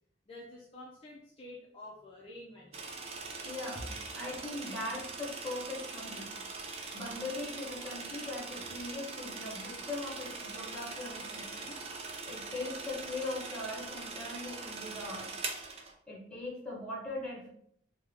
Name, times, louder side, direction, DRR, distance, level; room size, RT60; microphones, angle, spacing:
voice 1, 0.3-3.0, left 1 dB, 30° left, -4 dB, 0.4 m, -50 dB
sound 1, 2.7-15.9, right 4 dB, 30° right, 0.4 m, -42 dB
voice 2, 3.4-6.3 6.9-11.8 12.3-15.3 16.1-17.5, left 2 dB, 5° left, -5 dB, 1.0 m, -40 dB
3.3 x 2.1 x 3.5 m, 0.69 s
head